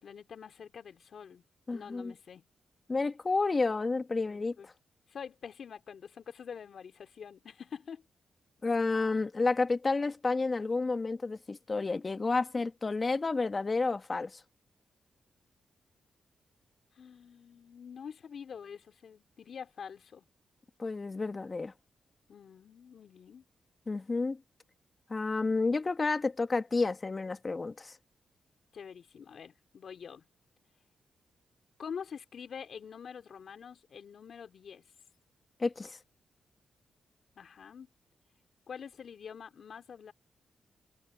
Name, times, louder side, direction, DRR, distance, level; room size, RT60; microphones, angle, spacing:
voice 1, 0.0-1.4 1.7-2.4 4.2-4.7 5.1-8.0 16.9-20.2 22.3-23.4 28.7-30.3 31.8-34.9 37.4-37.9 38.7-40.1, left 7 dB, 65° left, 3.2 m, -46 dB
voice 2, 1.7-2.1 2.9-4.7 8.6-14.4 20.8-21.7 23.9-24.4 25.1-28.0 35.6-36.0, left 3 dB, 35° left, 1.9 m, -30 dB
cardioid pair, 70°, 0 cm